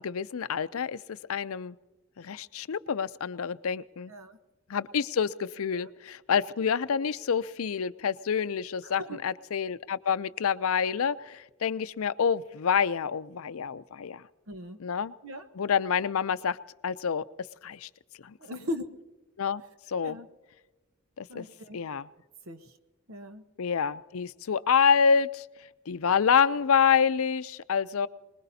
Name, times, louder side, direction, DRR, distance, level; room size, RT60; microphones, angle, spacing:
voice 1, 0.0-1.8 2.2-4.1 4.7-14.2 14.8-15.1 15.5-16.6 16.8-17.3 17.6-17.9 18.2-18.4 19.4-19.6 19.9-20.2 21.2-21.5 21.7-22.1 23.6-25.5 25.9-28.1, left 6 dB, 75° left, 15 dB, 0.5 m, -27 dB
voice 2, 14.5-14.8 15.2-15.5 18.4-19.0 20.0-20.3 21.3-21.8 22.5-22.7 23.1-23.5, left 1 dB, 70° right, 9 dB, 1.1 m, -38 dB
26.0 x 20.5 x 2.8 m, 1.1 s
head